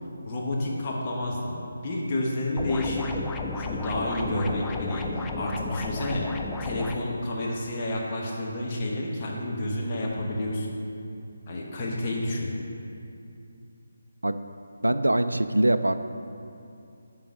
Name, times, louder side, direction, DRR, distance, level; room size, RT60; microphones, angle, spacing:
voice 1, 0.2-1.6 1.8-3.3 3.6-6.3 6.6-10.7 11.5-12.5, left 1 dB, 30° left, -3 dB, 1.2 m, -30 dB
sound 1, 2.6-7.0, left 3 dB, 10° left, 0.3 m, -33 dB
voice 2, 14.8-16.0, right 1 dB, 75° right, 10 dB, 0.3 m, -23 dB
10.5 x 3.9 x 5.1 m, 2.6 s
figure-of-eight pair, 150°, 0 cm